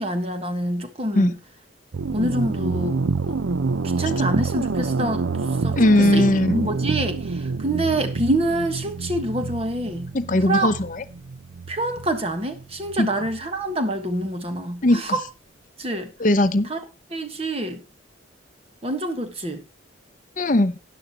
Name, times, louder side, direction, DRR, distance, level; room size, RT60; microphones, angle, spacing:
voice 1, 0.0-1.4 2.1-3.0 3.2-3.4 4.0-5.3 5.6-10.1 10.4-10.7 11.7-15.3 15.8-16.1 16.7-16.8 17.1-17.8 18.8-19.6, right 1 dB, 30° right, 1.4 m, -26 dB
sound 1, 1.9-13.4, right 4 dB, 75° right, 0.6 m, -27 dB
voice 2, 5.8-6.7 10.1-10.7 13.0-13.1 14.8-15.0 16.2-16.7 20.4-20.7, left 1 dB, 40° left, 0.7 m, -18 dB
12.5 x 10.0 x 2.9 m
head